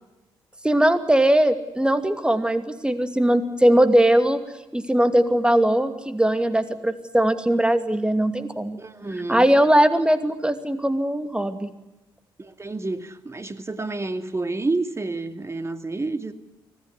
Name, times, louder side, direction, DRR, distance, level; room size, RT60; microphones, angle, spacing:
voice 1, 0.6-4.4 4.7-8.8 9.3-11.7, right 1 dB, 10° right, 10 dB, 2.6 m, -20 dB
voice 2, 8.8-9.5 12.4-16.3, right 3 dB, 25° right, 10 dB, 2.4 m, -29 dB
25.0 x 17.5 x 9.9 m, 1.0 s
figure-of-eight pair, 40°, 11 cm